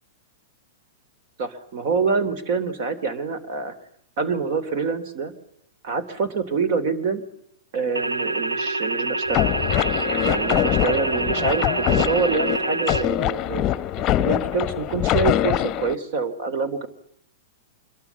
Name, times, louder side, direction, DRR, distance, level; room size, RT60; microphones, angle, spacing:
voice 1, 1.4-3.7 4.2-5.3 5.8-7.2 7.7-9.5 10.2-13.9 14.2-16.9, right 5 dB, 50° right, 15 dB, 3.4 m, -26 dB
sound 1, 7.9-13.0, right 2 dB, 85° right, 1.2 m, -26 dB
sound 2, 9.3-15.9, left 13 dB, 35° left, 0.9 m, -23 dB
26.0 x 22.0 x 7.2 m, 0.72 s
figure-of-eight pair, 105°, 0 cm